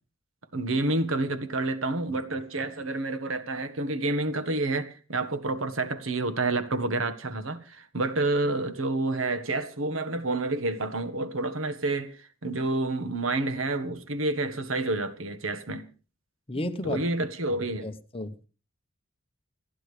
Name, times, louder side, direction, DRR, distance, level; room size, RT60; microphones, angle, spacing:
voice 1, 0.5-15.9 16.8-17.9, right 2 dB, 80° right, 1.6 m, -29 dB
voice 2, 16.5-17.1 17.8-18.4, left 1 dB, 30° left, 1.1 m, -33 dB
28.5 x 10.5 x 3.4 m
head